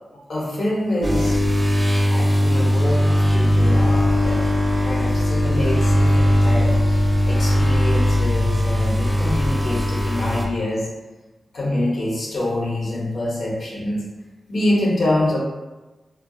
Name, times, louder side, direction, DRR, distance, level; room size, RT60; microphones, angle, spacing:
voice 1, 0.3-1.4 2.1-4.4 4.8-10.9 11.5-14.0 14.5-15.4, left 1 dB, 65° left, -5 dB, 0.7 m, -25 dB
sound 1, 1.0-10.4, equal, 15° right, 0.4 m, -19 dB
2.5 x 2.2 x 2.3 m, 1.1 s
cardioid pair, 70°, 0 cm